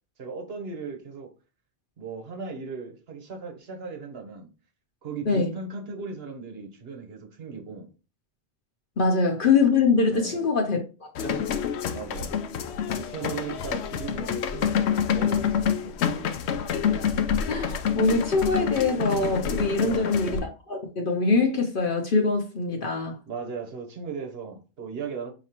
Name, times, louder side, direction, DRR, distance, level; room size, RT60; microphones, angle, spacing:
voice 1, 0.2-1.3 2.0-4.5 5.0-7.9 10.1-10.4 11.9-12.4 12.9-16.3 19.8-20.2 23.3-25.3, right 5 dB, 70° right, 1.2 m, -37 dB
voice 2, 9.0-10.8 11.2-11.4 16.9-23.2, left 4 dB, 55° left, 0.9 m, -24 dB
sound 1, 11.2-20.4, left 7 dB, 90° left, 0.9 m, -27 dB
5.1 x 2.9 x 2.9 m
omnidirectional pair, 1.1 m